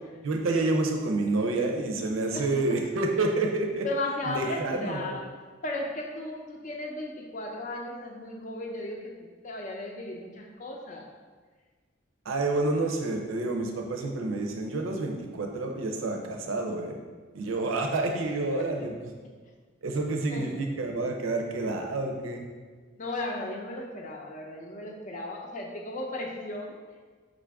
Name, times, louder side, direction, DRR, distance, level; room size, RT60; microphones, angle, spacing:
voice 1, 0.2-3.9 4.2-5.2 12.3-17.0 17.3-19.1 19.8-22.4, right 2 dB, 90° right, 2 dB, 0.6 m, -29 dB
voice 2, 2.3-2.7 3.8-5.2 5.6-9.1 9.4-11.1 18.8-18.9 20.3-20.5 23.0-26.8, left 2 dB, 40° left, 1 dB, 0.5 m, -35 dB
5.0 x 2.5 x 3.4 m, 1.5 s
head